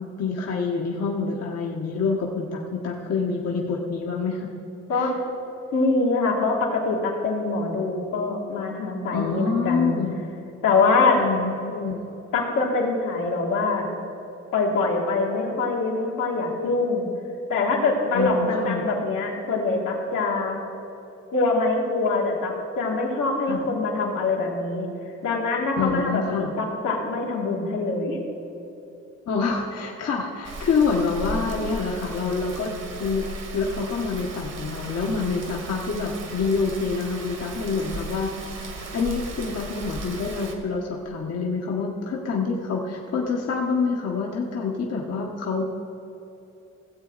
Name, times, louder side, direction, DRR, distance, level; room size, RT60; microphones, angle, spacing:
voice 1, 0.0-4.5 4.9-5.1 9.1-10.2 11.1-12.0 18.1-18.8 23.5-23.7 25.8-26.5 29.3-32.7 33.0-33.3 33.5-38.3 38.9-45.6, left 4 dB, 55° left, -1 dB, 1.2 m, -26 dB
voice 2, 5.7-10.0 10.6-11.2 12.3-13.9 14.5-17.1 17.5-20.6 21.3-24.9 25.2-28.2, left 3 dB, 80° left, -2 dB, 2.3 m, -24 dB
Rain, 30.4-40.5, right 2 dB, 60° right, 1.8 m, -36 dB
16.0 x 7.7 x 4.0 m, 3.0 s
cardioid pair, 90°, 30 cm